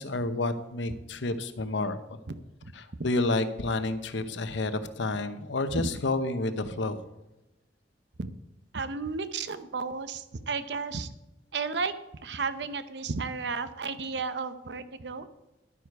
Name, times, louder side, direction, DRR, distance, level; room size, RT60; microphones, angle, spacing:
voice 1, 0.0-2.2 2.8-7.0, left 2 dB, 85° left, 10 dB, 0.9 m, -30 dB
voice 2, 2.3-2.7 5.7-5.9 8.2-8.3 8.7-11.1 11.5-11.9 12.2-15.3, right 4 dB, 70° right, 12 dB, 0.7 m, -33 dB
11.5 x 9.5 x 4.7 m, 0.95 s
head